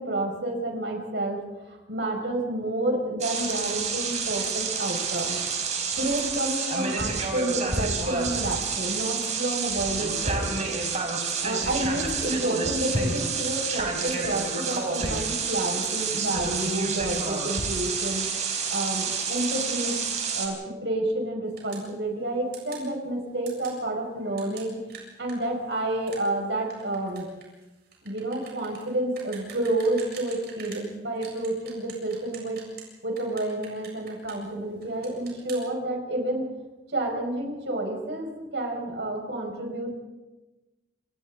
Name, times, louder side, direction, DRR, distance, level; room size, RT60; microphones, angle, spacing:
voice 1, 0.0-1.4 1.7-5.4 6.0-10.8 11.2-18.3 18.7-20.0 20.3-24.8 25.2-27.3 28.0-32.6 33.0-36.5 36.9-39.9, right 1 dB, 80° right, 1 dB, 5.7 m, -29 dB
sound 1, 3.2-20.5, right 5 dB, 40° right, 5.0 m, -29 dB
sound 2, 21.6-21.9 22.5-22.9 23.5-23.8 24.4-30.9 31.2-32.9 33.2-34.5 34.8-35.6, right 7 dB, 60° right, 7.7 m, -45 dB
28.5 x 27.0 x 3.9 m, 1.1 s
head